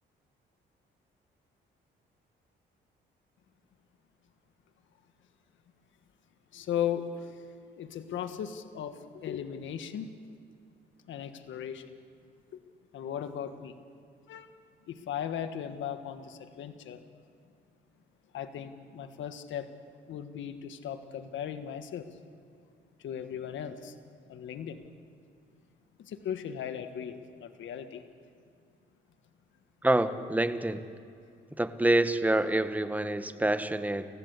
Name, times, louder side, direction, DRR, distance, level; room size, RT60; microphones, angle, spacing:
voice 1, 6.5-7.5 7.8-10.1 11.1-11.9 12.5-12.6 12.9-13.8 14.3-14.5 14.9-17.0 18.3-19.7 20.1-22.1 23.0-24.0 24.3-24.8 26.0-28.0, left 9 dB, 75° left, 8 dB, 1.6 m, -37 dB
voice 2, 29.8-30.8 31.6-34.1, right 1 dB, 10° right, 10 dB, 1.4 m, -27 dB
29.5 x 15.5 x 8.3 m, 2.4 s
cardioid pair, 90°, 20 cm